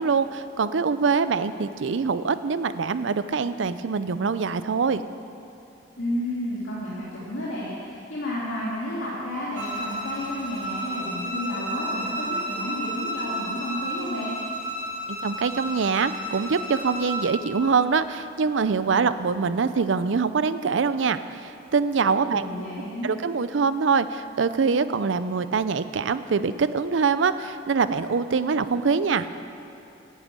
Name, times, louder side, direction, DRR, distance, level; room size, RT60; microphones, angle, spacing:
voice 1, 0.0-5.0 15.1-22.5 23.0-29.3, right 5 dB, 75° right, 13 dB, 0.5 m, -24 dB
voice 2, 6.0-14.3 22.2-23.1, left 1 dB, 85° left, -7 dB, 2.2 m, -31 dB
Bowed string instrument, 9.5-17.3, right 1 dB, 50° right, 3.5 m, -32 dB
11.5 x 9.0 x 8.2 m, 2.7 s
head